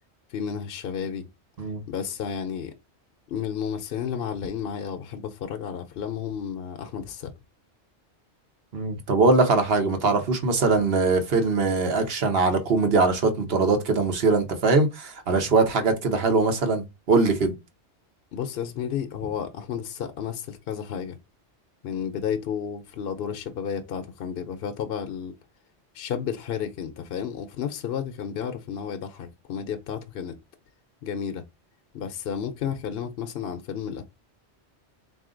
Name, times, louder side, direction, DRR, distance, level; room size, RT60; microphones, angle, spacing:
voice 1, 0.3-1.3 1.9-2.7 3.3-7.3 18.3-21.2 21.8-25.3 25.9-30.4 31.0-31.4 31.9-34.0, left 8 dB, 65° left, 0.8 m, -32 dB
voice 2, 8.7-17.5, right 3 dB, 60° right, 1.1 m, -22 dB
3.8 x 2.7 x 3.7 m
omnidirectional pair, 1.2 m